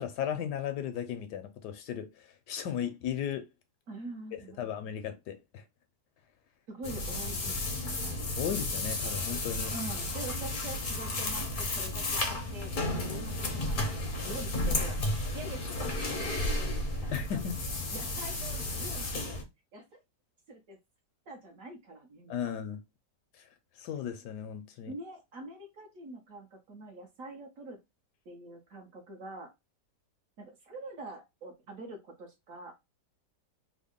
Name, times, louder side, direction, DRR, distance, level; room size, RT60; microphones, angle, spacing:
voice 1, 0.0-2.1 2.5-3.4 4.6-5.6 8.4-9.7 17.1-17.5 22.3-22.8 23.8-24.9, left 9 dB, 75° left, 1.1 m, -35 dB
voice 2, 3.9-4.7 6.7-8.1 9.7-13.9 14.2-16.7 17.0-17.5 17.9-19.4 19.7-20.0 20.5-20.8 21.3-22.5 24.9-27.8 28.2-29.5 30.4-32.8, right 2 dB, 55° right, 1.2 m, -45 dB
sound 1, 6.8-19.4, left 2 dB, 50° left, 0.6 m, -33 dB
3.6 x 2.1 x 3.6 m
omnidirectional pair, 1.9 m